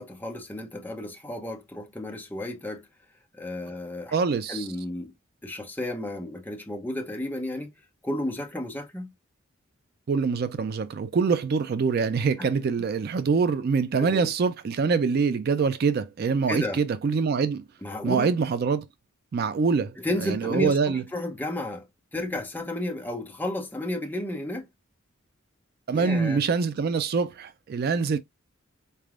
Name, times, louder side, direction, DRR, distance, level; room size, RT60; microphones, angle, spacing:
voice 1, 0.0-2.9 3.3-4.2 4.5-5.1 5.4-7.7 8.0-9.1 12.4-12.5 14.0-14.3 16.5-16.8 17.8-18.3 20.0-24.7 25.9-26.4, left 1 dB, 10° left, 0.7 m, -32 dB
voice 2, 4.1-4.7 10.1-17.6 18.0-18.9 19.3-20.0 20.2-21.0 25.9-28.2, right 5 dB, 50° right, 0.3 m, -25 dB
4.1 x 3.3 x 2.4 m
head